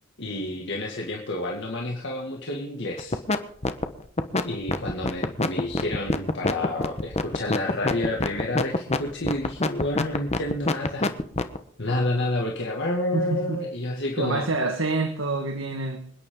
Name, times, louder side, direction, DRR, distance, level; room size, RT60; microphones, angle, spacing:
voice 1, 0.2-3.2 4.4-11.1 11.8-14.5, left 1 dB, 60° left, 0 dB, 2.1 m, -29 dB
sound 1, 3.0-3.4 3.6-11.6, left 2 dB, 30° left, 1.2 m, -24 dB
voice 2, 13.1-13.6 14.2-16.0, right 3 dB, 70° right, 6 dB, 1.6 m, -27 dB
26.5 x 10.0 x 3.8 m, 0.67 s
head